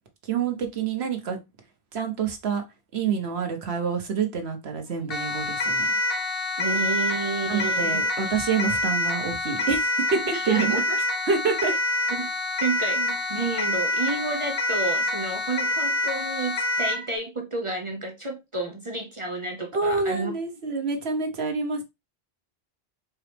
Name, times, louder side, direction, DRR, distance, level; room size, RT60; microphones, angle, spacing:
voice 1, 0.2-1.4 1.9-2.6 2.9-5.9 7.5-9.8 10.1-10.8 11.3-11.7 19.7-21.8, right 5 dB, 90° right, 1.3 m, -27 dB
Siren, 5.1-17.1, left 1 dB, 65° left, 1.1 m, -26 dB
voice 2, 6.6-8.0 10.2-11.0 11.7-11.8 12.1-12.3 12.6-20.3, right 3 dB, 35° right, 0.7 m, -31 dB
4.5 x 3.0 x 3.3 m
omnidirectional pair, 1.0 m